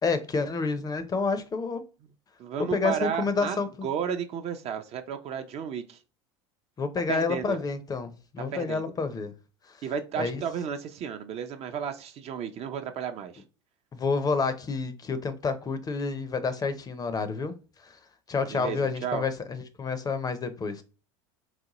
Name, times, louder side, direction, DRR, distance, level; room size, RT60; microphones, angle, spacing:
voice 1, 0.0-1.8 2.6-3.9 6.8-9.3 10.1-10.4 13.9-17.6 17.8-18.0 18.3-20.8, left 4 dB, 25° left, 0.5 m, -29 dB
voice 2, 2.4-6.0 7.1-7.6 8.5-8.8 9.8-13.4 18.5-19.2, right 7 dB, 45° right, 0.5 m, -33 dB
4.0 x 2.2 x 2.9 m
hypercardioid pair, 80°, 15 cm